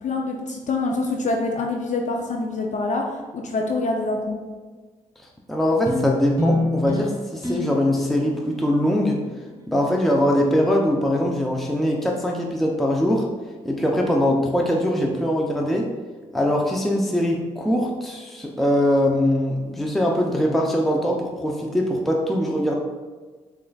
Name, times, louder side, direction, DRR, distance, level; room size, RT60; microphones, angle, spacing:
voice 1, 0.0-4.4, left 3 dB, 55° left, 1 dB, 0.5 m, -25 dB
voice 2, 5.2-9.2 9.7-13.3 13.6-15.9 16.3-22.7, equal, ahead, 0 dB, 0.5 m, -22 dB
sound 1, 5.9-10.5, left 1 dB, 25° right, 1.1 m, -29 dB
6.2 x 2.5 x 2.3 m, 1.4 s
supercardioid pair, 55°, 15 cm